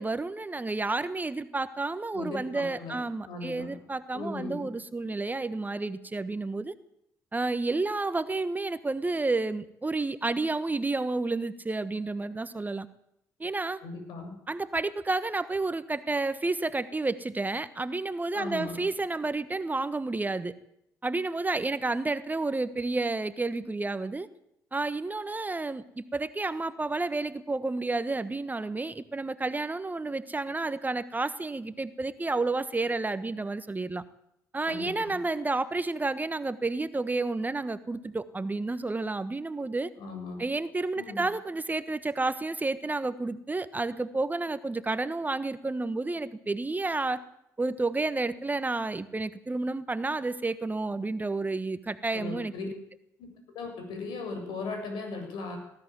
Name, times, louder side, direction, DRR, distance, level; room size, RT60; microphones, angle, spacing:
voice 1, 0.0-6.7 7.3-12.9 13.4-13.8 14.5-20.5 21.0-24.3 24.7-34.0 34.5-39.9 40.4-47.2 47.6-52.5, right 3 dB, 20° right, 13 dB, 1.3 m, -30 dB
voice 2, 2.1-3.0 3.2-3.7 4.1-4.7 13.8-14.4 18.3-18.8 34.7-35.2 40.0-40.4 40.9-41.2 52.1-52.7 53.2-53.3 53.5-55.6, left 3 dB, 65° left, 4 dB, 7.7 m, -37 dB
20.0 x 14.0 x 9.3 m, 0.79 s
hypercardioid pair, 50°, 8 cm